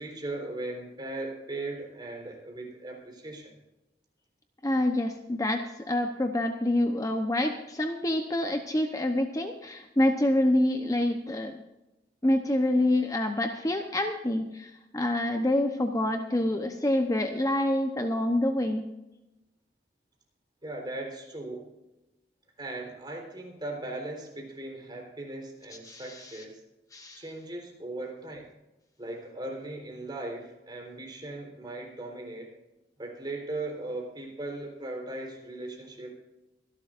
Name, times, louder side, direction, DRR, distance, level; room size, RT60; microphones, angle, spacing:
voice 1, 0.0-3.6 20.6-21.7 22.6-26.6 27.2-28.5 29.0-32.5 33.0-36.1, right 2 dB, 25° right, 0 dB, 4.0 m, -38 dB
voice 2, 4.6-11.6 12.2-18.9 25.8-26.4 26.9-27.2, left 1 dB, 20° left, 5 dB, 0.9 m, -27 dB
25.0 x 12.0 x 2.6 m, 0.96 s
head